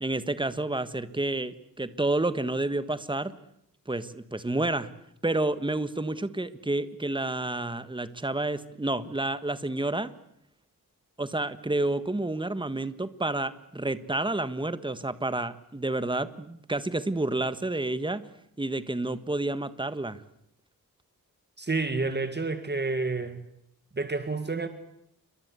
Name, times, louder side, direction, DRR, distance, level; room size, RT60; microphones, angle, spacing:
voice 1, 0.0-3.3 3.9-4.9 5.2-10.1 11.2-18.2 18.6-20.2, right 2 dB, 15° right, 13 dB, 1.5 m, -29 dB
voice 2, 21.6-23.5 23.9-24.7, right 3 dB, 30° right, 9 dB, 2.0 m, -29 dB
29.0 x 23.5 x 8.2 m, 0.78 s
wide cardioid pair, 115°, 36 cm